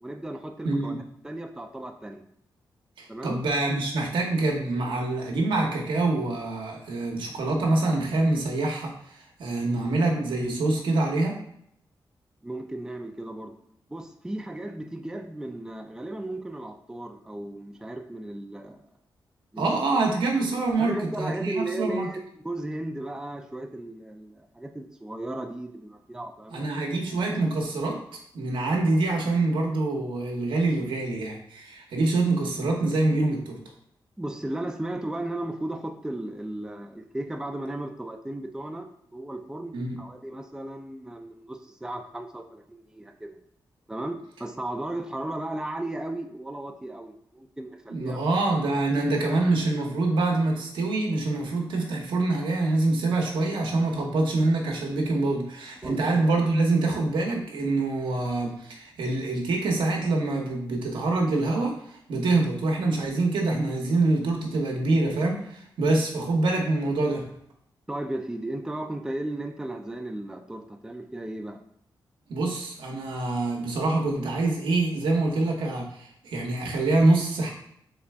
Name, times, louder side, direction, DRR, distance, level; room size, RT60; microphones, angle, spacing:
voice 1, 0.0-0.9 1.2-2.2 3.1-3.4 12.4-13.5 13.9-18.9 19.5-19.7 20.8-26.7 34.2-43.4 43.9-48.2 55.8-56.0 67.9-71.6, right 1 dB, 10° right, 4 dB, 0.5 m, -35 dB
voice 2, 0.6-1.0 3.0-11.4 19.6-22.1 26.5-28.0 28.3-33.6 39.7-40.0 47.9-67.2 72.3-77.5, right 2 dB, 90° right, 0 dB, 0.9 m, -25 dB
3.9 x 3.2 x 3.4 m, 0.70 s
cardioid pair, 70°, 8 cm